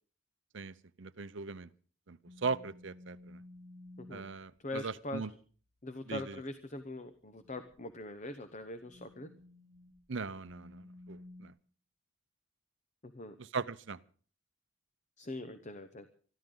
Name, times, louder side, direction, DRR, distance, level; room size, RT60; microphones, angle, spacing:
voice 1, 0.5-1.7 2.1-3.4 4.1-5.3 6.1-6.3 10.1-11.5 13.4-14.0, right 4 dB, 60° right, 16 dB, 0.7 m, -39 dB
sound 1, 2.3-4.4 7.4-7.7 8.6-11.5, left 2 dB, 20° right, 1.4 m, -54 dB
voice 2, 4.6-5.3 5.8-9.3 13.0-13.3 15.2-16.1, left 1 dB, 35° left, 9 dB, 0.9 m, -42 dB
24.5 x 14.0 x 3.9 m, 0.43 s
head